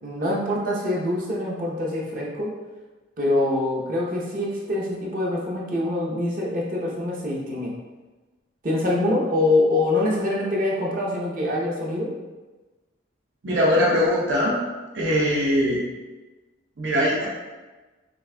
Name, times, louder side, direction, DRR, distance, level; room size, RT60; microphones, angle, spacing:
voice 1, 0.0-2.5 3.2-7.7 8.6-12.1, left 2 dB, 45° right, -3 dB, 0.7 m, -24 dB
voice 2, 13.4-14.5 14.9-15.8 16.8-17.3, equal, 75° right, -5 dB, 0.8 m, -21 dB
6.2 x 2.5 x 2.2 m, 1.2 s
head